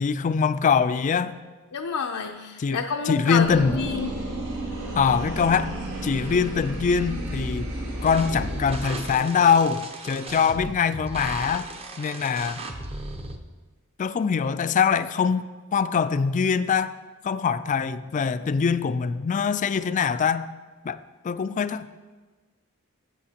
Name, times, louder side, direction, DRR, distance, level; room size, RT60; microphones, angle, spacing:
voice 1, 0.0-1.4 2.6-3.8 4.9-5.7 6.0-7.7 8.0-11.7 12.0-12.6 14.0-16.9 17.2-20.5 20.8-21.9, left 6 dB, 35° left, 0.3 m, -23 dB
voice 2, 1.7-4.1, left 5 dB, 85° left, 0.5 m, -29 dB
sound 1, 3.4-9.1, right 1 dB, 85° right, 3.3 m, -32 dB
sound 2, 8.1-13.4, right 2 dB, 25° right, 0.6 m, -37 dB
14.5 x 8.2 x 2.9 m
head